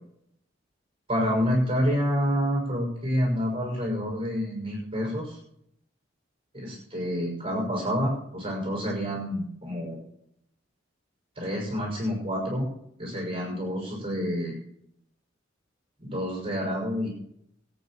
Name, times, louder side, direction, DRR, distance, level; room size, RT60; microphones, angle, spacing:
voice 1, 1.1-5.4 6.5-10.0 11.4-12.7 13.0-14.6 16.0-17.1, equal, 30° right, -2 dB, 5.8 m, -28 dB
22.5 x 8.7 x 4.4 m, 0.72 s
head